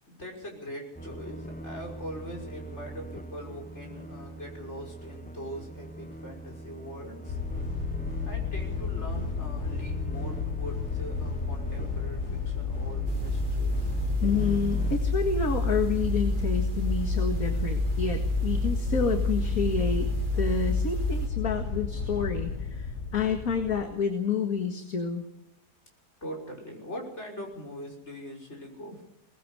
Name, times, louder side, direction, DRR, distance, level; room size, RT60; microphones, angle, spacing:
voice 1, 0.1-7.4 8.3-13.9 26.2-29.0, equal, 45° left, 1 dB, 6.3 m, -42 dB
sound 1, 0.9-15.0, right 2 dB, 5° left, 0.7 m, -42 dB
sound 2, 7.3-23.8, left 5 dB, 85° left, 3.4 m, -33 dB
sound 3, 13.1-21.3, left 1 dB, 35° right, 1.5 m, -29 dB
voice 2, 14.2-20.1 20.3-25.2, left 6 dB, 60° left, 5 dB, 2.3 m, -29 dB
22.5 x 20.0 x 6.9 m, 0.79 s
omnidirectional pair, 1.7 m